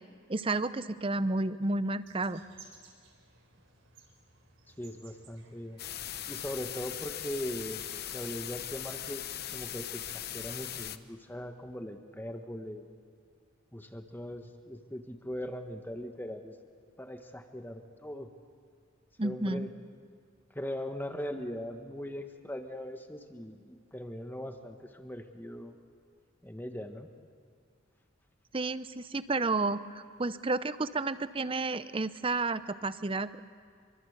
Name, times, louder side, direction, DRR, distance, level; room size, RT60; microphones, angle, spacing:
voice 1, 0.3-2.4 19.2-19.7 28.5-33.4, right 3 dB, 25° right, 14 dB, 0.6 m, -31 dB
sound 1, 2.0-7.3, right 4 dB, 70° right, 4.1 m, -59 dB
voice 2, 4.8-5.8 6.3-12.9 13.7-16.5 17.0-18.3 19.2-19.7 20.5-25.8 26.4-27.1, left 1 dB, 10° left, 6 dB, 1.4 m, -40 dB
sound 2, 5.8-11.0, left 11 dB, 50° left, 0.9 m, -39 dB
27.0 x 24.0 x 8.1 m, 2.2 s
head